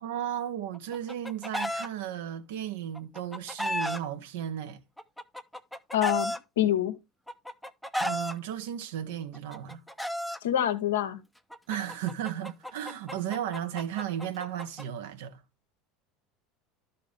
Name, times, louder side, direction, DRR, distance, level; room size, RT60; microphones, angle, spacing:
voice 1, 0.0-4.8 8.0-9.8 11.7-15.4, right 10 dB, 70° right, 1.2 m, -35 dB
Chicken rooster, 0.7-1.9 2.9-4.0 5.0-6.4 7.3-8.3 9.3-10.4 11.5-14.8, equal, ahead, 0.8 m, -33 dB
voice 2, 5.9-7.0 10.4-11.2, left 11 dB, 75° left, 1.1 m, -26 dB
12.5 x 4.6 x 3.5 m
hypercardioid pair, 75°, 0 cm